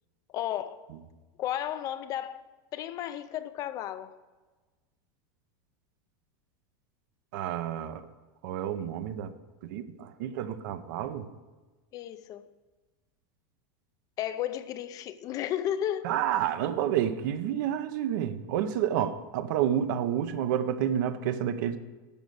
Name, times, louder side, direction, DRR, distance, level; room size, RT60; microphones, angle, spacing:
voice 1, 0.3-0.8 1.4-2.4 2.7-4.1 11.9-12.4 14.2-16.1, left 11 dB, 30° left, 0.5 m, -33 dB
voice 2, 7.3-8.0 8.4-9.3 9.7-11.3 16.0-21.8, right 10 dB, 60° right, 0.8 m, -29 dB
12.0 x 5.2 x 7.8 m
supercardioid pair, 160°, 11 cm